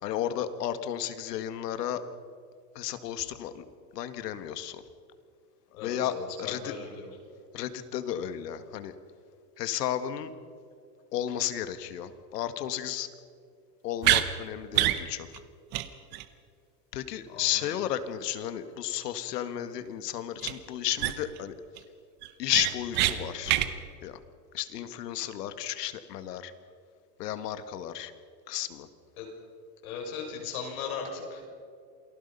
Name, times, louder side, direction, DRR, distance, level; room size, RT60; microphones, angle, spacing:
voice 1, 0.0-2.0 2.8-3.6 3.9-4.8 5.8-6.7 7.5-8.9 9.6-10.3 11.1-13.1 13.8-15.3 16.9-21.5 22.4-23.5 24.0-24.2 24.5-26.5 27.2-28.1 28.5-28.9, left 11 dB, 80° left, 10 dB, 1.9 m, -33 dB
voice 2, 5.7-7.1 17.3-17.7 29.2-29.3 29.8-31.5, left 5 dB, 60° left, 1 dB, 6.6 m, -38 dB
sound 1, 14.0-14.3 14.7-15.0 15.3-15.4 15.7-15.9 16.1-16.2 20.4-20.5 21.0-21.4 21.8-21.9 22.2-23.1 23.5-23.7, right 15 dB, 20° right, 0.7 m, -25 dB
28.5 x 19.5 x 5.5 m, 2.3 s
supercardioid pair, 170°, 48 cm